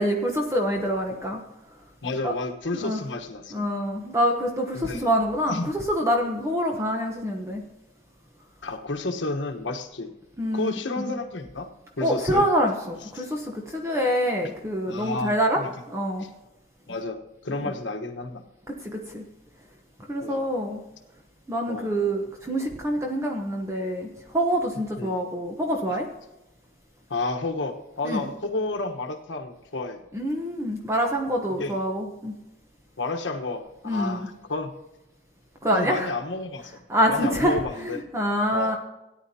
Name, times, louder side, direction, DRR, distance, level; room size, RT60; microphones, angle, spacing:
voice 1, 0.0-1.4 2.2-2.3 2.8-3.0 3.5-7.6 10.4-10.7 11.0-11.1 12.0-15.6 15.9-16.3 17.6-17.7 18.7-19.2 20.1-20.8 21.5-26.1 28.0-28.2 30.1-32.3 33.8-34.3 35.6-36.1 36.9-38.8, equal, 15° right, 1 dB, 1.0 m, -26 dB
voice 2, 2.0-3.7 4.7-5.1 5.5-5.7 8.6-10.1 10.5-11.7 12.0-12.4 13.1-13.3 14.4-14.5 14.9-15.7 16.2-16.3 16.9-18.4 20.2-20.5 21.7-21.9 25.0-25.2 27.1-30.0 31.5-31.8 33.0-34.7 35.7-36.8 37.1-38.0 38.5-38.8, left 2 dB, 75° left, 5 dB, 1.3 m, -31 dB
17.5 x 10.0 x 2.9 m, 0.97 s
head